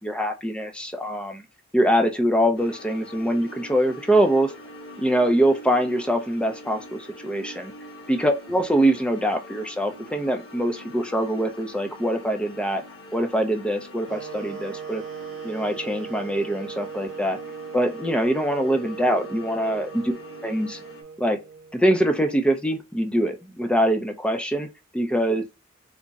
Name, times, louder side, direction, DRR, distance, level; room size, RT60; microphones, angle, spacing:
voice 1, 0.0-1.4 1.7-4.5 5.0-7.7 8.1-12.8 13.1-15.0 15.4-17.4 17.7-20.0 20.4-20.8 21.2-21.4 21.7-24.7 24.9-25.4, right 1 dB, 5° left, 0.5 m, -23 dB
sound 1, 2.6-21.0, left 1 dB, 65° left, 0.9 m, -44 dB
Wind instrument woodwind instrument, 14.1-22.0, right 6 dB, 80° right, 0.5 m, -39 dB
3.5 x 2.1 x 3.9 m
head